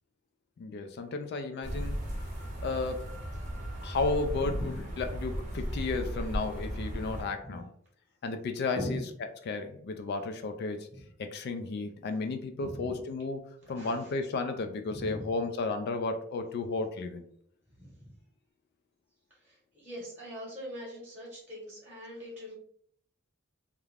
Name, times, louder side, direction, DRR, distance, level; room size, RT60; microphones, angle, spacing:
voice 1, 0.6-2.0 2.6-3.1 3.8-7.7 8.2-9.1 9.4-10.9 11.2-13.4 13.7-17.2, left 3 dB, 50° left, 7 dB, 0.3 m, -33 dB
sound 1, 1.6-7.2, equal, 35° right, 0.6 m, -36 dB
voice 2, 1.7-2.2 4.4-4.8 7.4-7.6 8.7-9.0 10.9-11.0 12.6-13.0 13.7-14.1 14.9-15.3 17.8-18.1 19.4-22.5, equal, 10° right, -5 dB, 0.9 m, -42 dB
2.4 x 2.2 x 3.2 m, 0.63 s
head